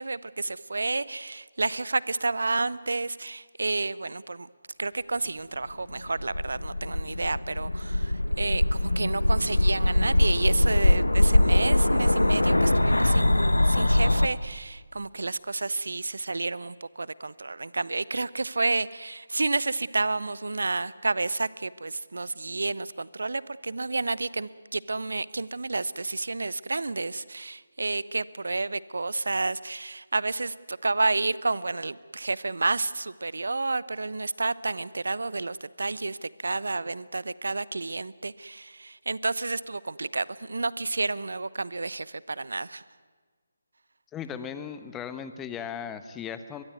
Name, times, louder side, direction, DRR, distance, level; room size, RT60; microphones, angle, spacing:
voice 1, 0.0-4.5 4.8-42.8, right 3 dB, 65° right, 19 dB, 0.9 m, -30 dB
sound 1, 5.9-14.3, left 1 dB, 85° left, 1.2 m, -22 dB
voice 2, 44.1-46.6, left 8 dB, 10° left, 11 dB, 1.1 m, -37 dB
22.5 x 22.0 x 9.5 m, 1.5 s
figure-of-eight pair, 155°, 0 cm